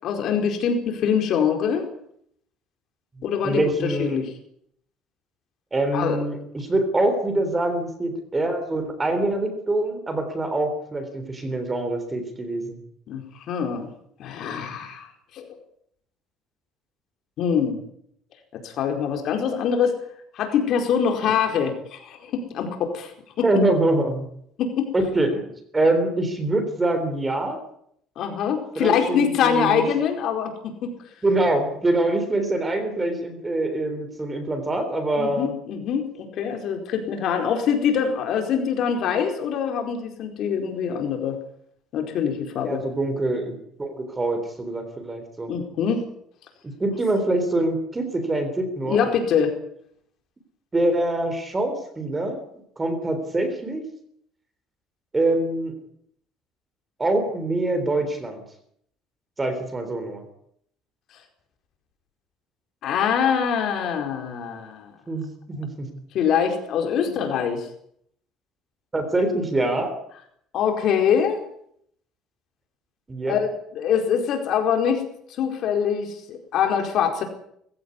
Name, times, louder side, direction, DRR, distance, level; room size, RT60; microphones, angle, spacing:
voice 1, 0.0-1.9 3.2-4.3 5.9-6.2 13.1-13.9 14.2-15.1 15.3-15.6 17.4-17.8 18.5-20.0 20.3-23.1 23.4-23.5 24.6-24.9 28.2-30.9 35.2-41.4 41.9-42.8 45.5-46.0 48.9-49.6 62.8-64.9 66.1-67.7 70.5-71.4 73.3-73.5 73.7-75.0 75.4-77.2, left 7 dB, 45° left, 5 dB, 4.6 m, -24 dB
voice 2, 3.2-4.2 5.7-12.8 23.4-24.3 24.9-25.4 25.7-27.6 28.7-29.8 31.2-35.5 42.6-45.5 46.6-49.1 50.7-52.4 52.8-53.8 55.1-55.7 57.0-58.4 59.4-60.2 65.1-65.9 66.9-67.2 68.9-69.9 73.1-73.4, right 2 dB, 10° right, 8 dB, 3.5 m, -24 dB
20.5 x 16.5 x 9.8 m, 0.70 s
cardioid pair, 180°, 0 cm